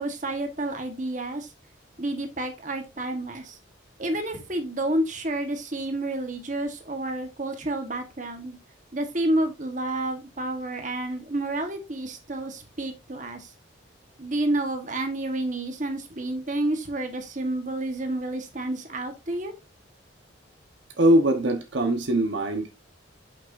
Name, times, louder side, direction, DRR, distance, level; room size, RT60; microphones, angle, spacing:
voice 1, 0.0-1.5 2.0-3.6 4.0-8.6 8.9-13.5 14.2-19.5, right 1 dB, 40° right, 1.3 m, -30 dB
voice 2, 21.0-22.7, right 1 dB, 70° right, 1.1 m, -21 dB
8.2 x 6.0 x 2.6 m
head